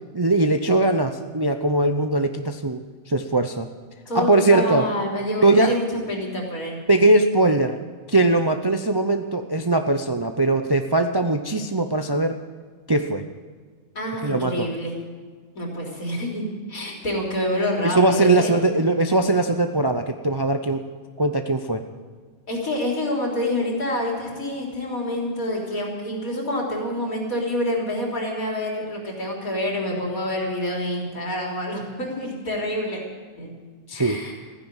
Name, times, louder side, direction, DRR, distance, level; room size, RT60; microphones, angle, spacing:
voice 1, 0.1-3.7 4.1-4.8 5.4-5.8 6.9-7.8 8.1-12.4 12.9-13.3 14.2-14.7 17.8-20.8 21.2-21.9 33.9-34.2, right 2 dB, 30° right, 6 dB, 0.5 m, -20 dB
voice 2, 4.1-6.8 13.9-15.0 15.5-18.5 22.5-33.0 33.4-33.5 33.9-34.3, left 1 dB, 75° left, -1 dB, 4.0 m, -27 dB
15.5 x 10.0 x 9.1 m, 1.5 s
omnidirectional pair, 1.5 m